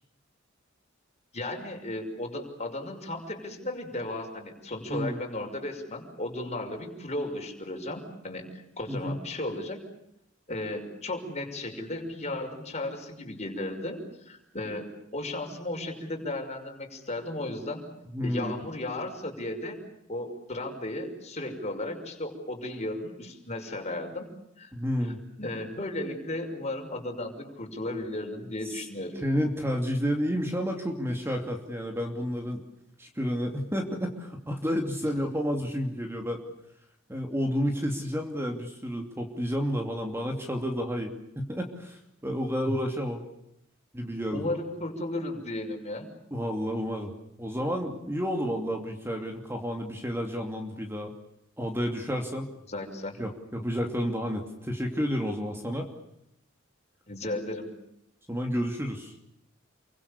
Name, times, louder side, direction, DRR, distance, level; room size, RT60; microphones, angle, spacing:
voice 1, 1.3-9.8 10.5-17.8 18.2-19.8 20.1-24.3 24.6-24.7 25.4-29.2 42.7-42.8 44.3-46.1 52.7-53.2 57.1-57.7, left 1 dB, 35° left, 4 dB, 6.1 m, -35 dB
voice 2, 18.1-18.6 24.7-25.2 28.7-28.8 29.2-32.6 33.0-36.4 37.1-43.2 43.9-44.5 46.3-47.1 47.4-51.1 51.6-52.5 53.2-55.9 58.3-59.1, equal, 10° right, 3 dB, 2.8 m, -30 dB
29.0 x 24.5 x 6.9 m, 0.79 s
head